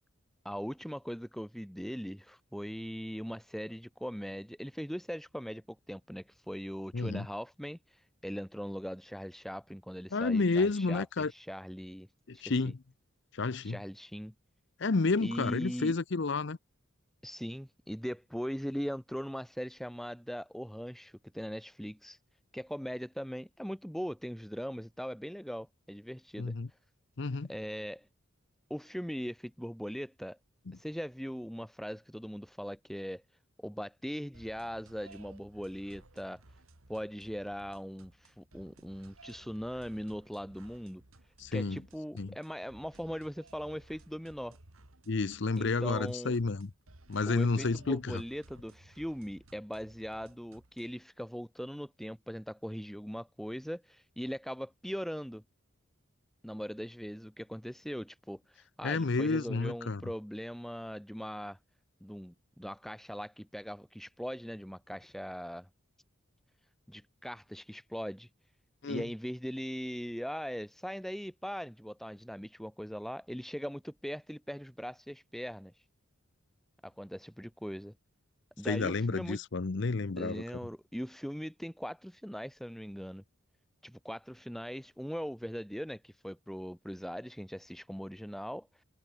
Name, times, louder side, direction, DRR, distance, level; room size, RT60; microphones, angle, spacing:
voice 1, 0.4-12.1 12.3-12.7 13.6-14.3 15.2-15.9 17.2-22.2 22.5-26.5 27.5-28.1 28.7-30.4 30.7-33.2 33.6-36.4 36.9-41.0 41.5-44.6 45.6-46.3 47.3-55.4 56.4-61.6 62.0-65.7 66.9-68.3 68.9-75.8 76.8-77.9 78.6-79.4 80.2-83.2 83.8-88.8, equal, ahead, 1.7 m, -40 dB
voice 2, 6.9-7.3 10.1-11.3 12.3-12.8 13.3-13.8 14.8-16.6 26.4-26.7 27.2-27.5 30.7-30.8 41.4-41.8 42.2-42.3 45.1-46.7 47.1-48.2 58.8-60.0 68.8-69.1 78.7-80.4, left 3 dB, 55° left, 0.6 m, -30 dB
sound 1, 34.3-51.0, right 2 dB, 80° right, 2.7 m, -58 dB
head